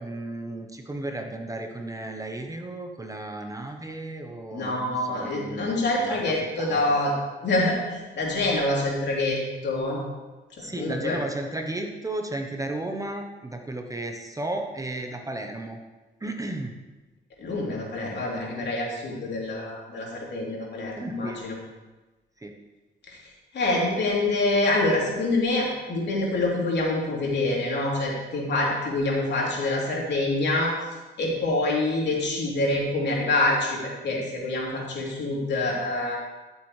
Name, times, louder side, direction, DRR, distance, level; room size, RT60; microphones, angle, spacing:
voice 1, 0.0-6.8 10.6-15.8 16.2-16.7 20.9-21.4 22.4-22.5, right 2 dB, 15° right, 4 dB, 1.0 m, -34 dB
voice 2, 4.5-7.1 7.4-10.0 10.8-11.2 17.4-21.5 23.5-30.7 31.2-33.8 34.0-36.2, left 2 dB, 60° left, -3 dB, 3.3 m, -26 dB
14.0 x 7.3 x 3.3 m, 1.2 s
cardioid pair, 90°, 20 cm